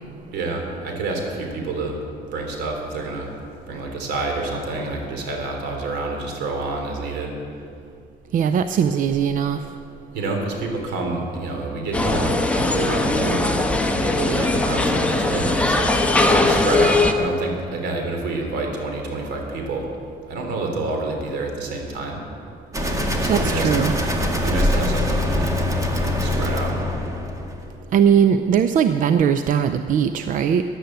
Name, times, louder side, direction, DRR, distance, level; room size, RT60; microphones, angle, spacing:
voice 1, 0.3-2.0 2.3-3.3 3.7-7.3 10.1-15.9 16.3-19.9 20.3-22.2 23.2-23.7 24.4-25.6 26.2-26.8, right 2 dB, 80° right, 2 dB, 3.3 m, -28 dB
voice 2, 8.3-9.6 23.3-23.9 27.9-30.6, right 8 dB, 50° right, 10 dB, 0.6 m, -19 dB
sound 1, 11.9-17.1, left 2 dB, 5° left, 1.1 m, -20 dB
sound 2, 22.7-27.6, left 1 dB, 20° right, 2.0 m, -23 dB
13.5 x 11.0 x 8.0 m, 2.4 s
cardioid pair, 110°, 17 cm